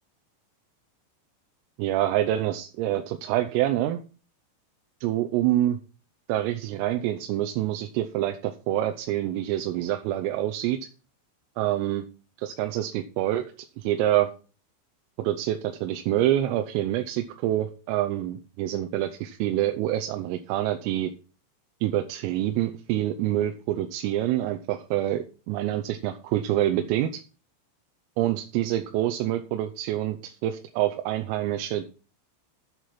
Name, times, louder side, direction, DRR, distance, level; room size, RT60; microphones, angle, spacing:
voice 1, 1.8-4.0 5.0-5.8 6.3-10.8 11.6-12.1 12.4-13.5 13.8-14.3 15.2-21.1 21.8-27.2 28.2-31.8, right 13 dB, 85° right, 6 dB, 3.4 m, -26 dB
8.7 x 8.0 x 5.8 m, 0.35 s
omnidirectional pair, 5.8 m